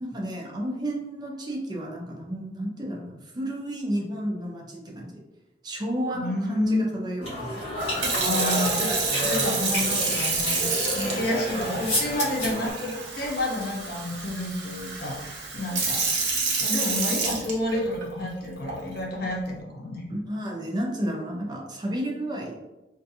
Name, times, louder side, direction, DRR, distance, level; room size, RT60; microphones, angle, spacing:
voice 1, 0.0-5.1 5.6-7.6 20.1-22.6, equal, 25° right, -2 dB, 0.5 m, -31 dB
voice 2, 6.1-6.9 8.2-8.9 9.2-16.0 16.6-20.0, left 1 dB, 60° left, -1 dB, 0.6 m, -30 dB
sound 1, 7.2-12.7, left 1 dB, 40° left, 1.3 m, -30 dB
Sink (filling or washing) / Fill (with liquid), 7.8-18.0 18.7-19.0, right 4 dB, 85° right, 0.6 m, -29 dB
2.5 x 2.3 x 2.6 m, 1.0 s
head